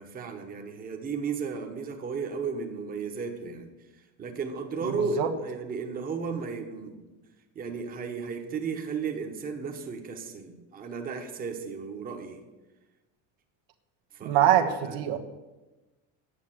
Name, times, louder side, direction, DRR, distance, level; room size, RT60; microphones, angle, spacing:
voice 1, 0.0-7.0 7.5-12.4 14.1-15.0, right 5 dB, 25° right, 4 dB, 1.2 m, -34 dB
voice 2, 4.8-5.3 14.2-15.2, right 10 dB, 75° right, 4 dB, 1.3 m, -24 dB
10.0 x 7.5 x 7.5 m, 1.1 s
cardioid pair, 160°, 34 cm